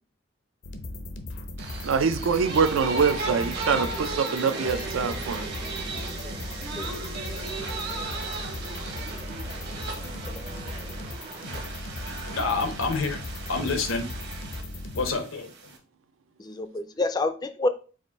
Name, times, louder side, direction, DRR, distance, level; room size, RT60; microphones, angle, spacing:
sound 1, 0.6-15.1, left 1 dB, 70° left, 0.7 m, -37 dB
sound 2, 1.6-15.8, right 3 dB, 55° right, 1.0 m, -36 dB
voice 1, 1.8-5.5, right 5 dB, 80° right, 0.4 m, -24 dB
sound 3, 2.3-11.6, right 2 dB, 35° right, 0.5 m, -42 dB
voice 2, 5.9-6.4 6.8-6.9 16.4-17.7, left 2 dB, 20° left, 0.3 m, -28 dB
voice 3, 12.1-13.2 13.5-14.1 14.9-15.5, left 4 dB, 90° left, 1.0 m, -28 dB
4.9 x 2.5 x 4.0 m
head